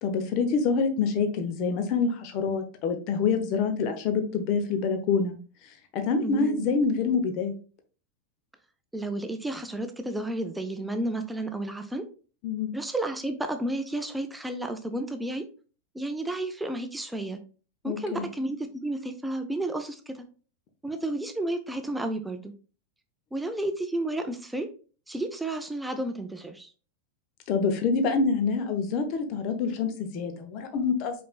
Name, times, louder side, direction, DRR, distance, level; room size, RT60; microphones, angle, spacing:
voice 1, 0.0-5.4 5.9-7.5 12.4-12.7 17.8-18.3 27.5-31.1, left 5 dB, 40° left, 7 dB, 0.9 m, -26 dB
voice 2, 6.2-6.7 8.9-12.1 12.7-15.5 15.9-17.4 17.8-20.2 20.8-22.5 23.3-24.7 25.1-26.7, right 1 dB, 5° right, 7 dB, 0.6 m, -32 dB
5.2 x 4.3 x 2.3 m, 0.37 s
figure-of-eight pair, 90°, 0 cm